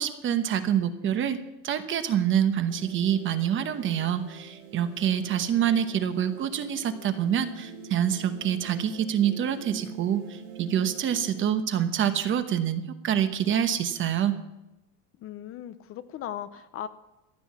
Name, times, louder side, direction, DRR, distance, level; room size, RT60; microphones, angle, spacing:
voice 1, 0.0-1.4 1.6-14.4, right 9 dB, 30° right, 10 dB, 1.0 m, -26 dB
sound 1, 2.7-11.4, right 5 dB, 90° right, 2.7 m, -45 dB
voice 2, 15.2-16.9, left 10 dB, 35° left, 12 dB, 0.7 m, -37 dB
15.0 x 9.4 x 7.2 m, 0.97 s
cardioid pair, 160°, 39 cm